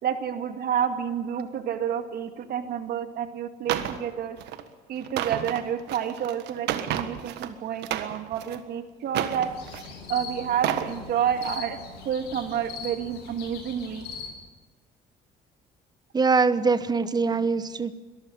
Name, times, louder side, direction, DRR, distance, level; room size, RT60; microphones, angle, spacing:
voice 1, 0.0-4.4 4.9-6.7 6.9-9.5 10.1-14.0, right 8 dB, 65° right, 8 dB, 2.2 m, -29 dB
sound 1, 3.7-4.0 4.4-4.6 5.0-7.5 7.8-8.6 9.1-9.9 10.4-10.9 11.4-11.6, right 11 dB, 85° right, 1.6 m, -31 dB
sound 2, 9.3-14.3, left 5 dB, 85° left, 6.9 m, -41 dB
voice 2, 16.1-17.9, right 4 dB, 25° right, 14 dB, 1.1 m, -23 dB
22.5 x 14.0 x 9.3 m, 1.3 s
cardioid pair, 110°, 17 cm